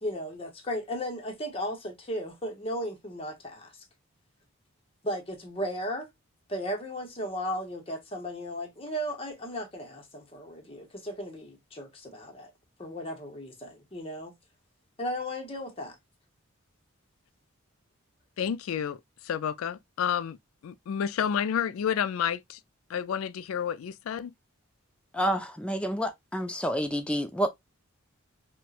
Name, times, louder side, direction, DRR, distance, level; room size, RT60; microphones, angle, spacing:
voice 1, 0.0-3.7 5.0-6.1 6.5-12.5 12.8-14.3 15.0-16.0, equal, 25° left, 0.8 m, -35 dB
voice 2, 18.4-19.0 19.2-20.4 20.6-22.6 22.9-24.3, left 8 dB, 75° left, 0.3 m, -30 dB
voice 3, 25.1-27.5, equal, 5° left, 0.4 m, -29 dB
4.3 x 2.2 x 2.3 m
head